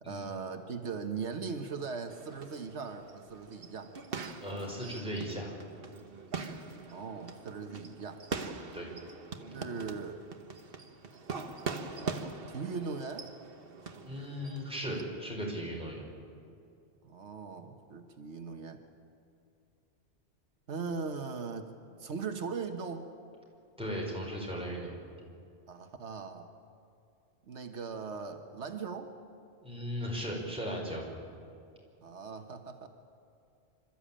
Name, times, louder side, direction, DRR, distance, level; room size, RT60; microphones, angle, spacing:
voice 1, 0.0-3.9 6.9-8.2 9.5-10.2 12.5-13.3 17.0-18.8 20.7-21.7 22.0-23.1 25.7-26.5 27.4-29.1 32.0-32.9, right 5 dB, 85° right, 6 dB, 1.5 m, -39 dB
sound 1, 2.1-15.0, right 4 dB, 55° right, 1.4 m, -42 dB
voice 2, 4.4-5.5 8.7-8.9 14.0-16.0 23.8-24.9 29.6-31.0, equal, 5° right, -3 dB, 5.0 m, -37 dB
27.0 x 13.5 x 8.7 m, 2.6 s
omnidirectional pair, 1.1 m